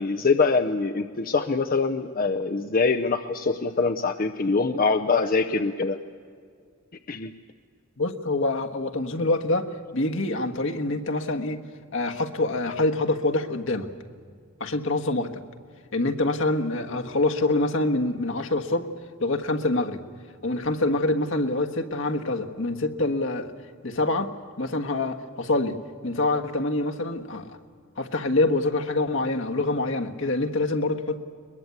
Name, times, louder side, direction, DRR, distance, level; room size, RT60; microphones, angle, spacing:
voice 1, 0.0-6.0 7.1-7.3, left 4 dB, 45° left, 6 dB, 0.7 m, -24 dB
voice 2, 8.0-11.6 11.9-13.9 14.6-15.3 15.9-18.9 19.2-20.0 20.4-23.5 23.8-24.3 24.6-25.8 26.0-27.6 28.0-31.3, left 2 dB, 65° left, 4 dB, 1.5 m, -25 dB
22.5 x 21.5 x 8.2 m, 2.2 s
head